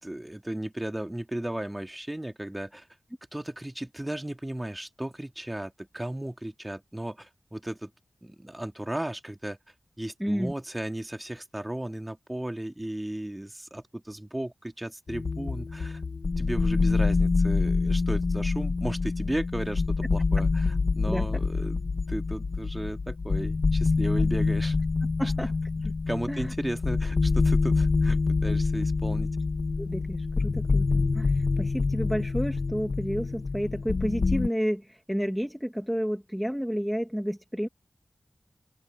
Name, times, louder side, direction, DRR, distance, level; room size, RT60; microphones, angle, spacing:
voice 1, 0.0-2.9 3.3-7.9 8.2-9.6 10.0-16.0 16.4-20.6 20.9-21.8 22.1-24.8 25.2-25.3 26.1-29.3, right 1 dB, 20° right, 2.7 m, -35 dB
voice 2, 10.2-10.5 21.1-21.4 24.2-24.3 25.2-25.5 25.8-25.9 26.3-26.5 29.8-37.7, equal, ahead, 1.6 m, -31 dB
sound 1, 15.1-34.5, left 4 dB, 75° left, 1.0 m, -26 dB
cardioid pair, 45°, 0 cm